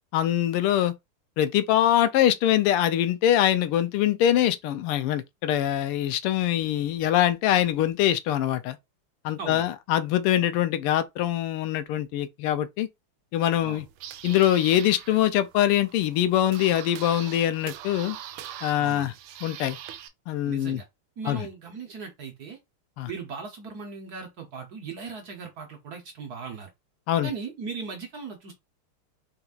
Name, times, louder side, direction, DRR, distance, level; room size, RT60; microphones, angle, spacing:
voice 1, 0.1-0.9 1.4-8.8 9.2-12.9 13.3-13.9 14.2-18.2 18.6-19.1 19.4-19.8 20.3-20.8 21.3-21.5 23.0-23.1 27.1-27.3, left 12 dB, 85° left, 1.5 m, -23 dB
sound 1, 13.6-20.1, right 11 dB, 80° right, 1.5 m, -42 dB
voice 2, 18.8-19.1 20.4-20.9 21.2-22.6 23.1-26.7 27.2-28.5, right 5 dB, 60° right, 1.1 m, -38 dB
4.3 x 3.9 x 2.4 m
omnidirectional pair, 2.4 m